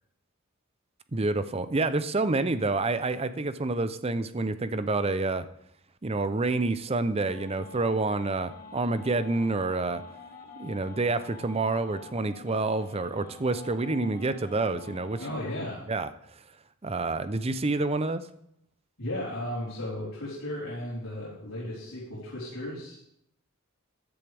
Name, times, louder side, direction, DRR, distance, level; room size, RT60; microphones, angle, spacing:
voice 1, 1.1-5.5 6.0-10.0 10.6-15.2 15.9-16.1 16.8-18.3, right 3 dB, 30° right, 12 dB, 0.6 m, -28 dB
sound 1, 7.1-15.6, left 4 dB, 40° left, 1.5 m, -48 dB
voice 2, 15.2-15.9 19.0-23.0, left 1 dB, 80° left, -9 dB, 4.2 m, -35 dB
15.0 x 10.5 x 3.5 m, 0.73 s
head